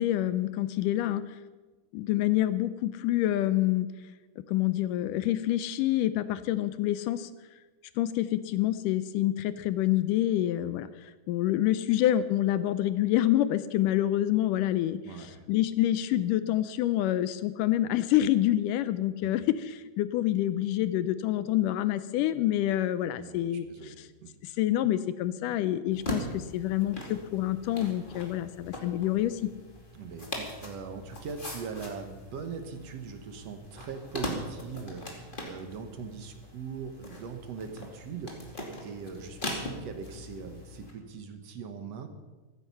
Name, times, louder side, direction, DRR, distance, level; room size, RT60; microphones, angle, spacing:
voice 1, 0.0-1.4 1.9-3.9 4.5-7.3 8.0-23.9 24.4-29.5, left 13 dB, 80° left, 14 dB, 2.1 m, -27 dB
voice 2, 15.0-15.5 19.2-19.4 23.2-24.4 29.9-42.1, right 5 dB, 60° right, 7 dB, 2.0 m, -41 dB
sound 1, 25.9-40.9, left 1 dB, 15° left, 2.1 m, -41 dB
15.5 x 14.5 x 5.6 m, 1.2 s
omnidirectional pair, 4.0 m